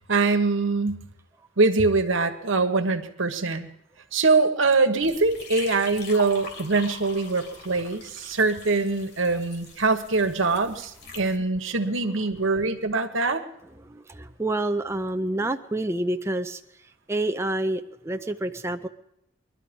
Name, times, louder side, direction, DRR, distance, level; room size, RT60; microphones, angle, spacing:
voice 1, 0.1-1.0 1.6-3.7 4.1-13.4, right 3 dB, 85° right, 7 dB, 1.3 m, -23 dB
sound 1, 5.0-11.4, left 3 dB, 60° left, 3.0 m, -42 dB
voice 2, 13.8-16.6 17.1-18.9, right 1 dB, 15° right, 7 dB, 0.5 m, -28 dB
22.5 x 12.0 x 5.3 m, 0.81 s
head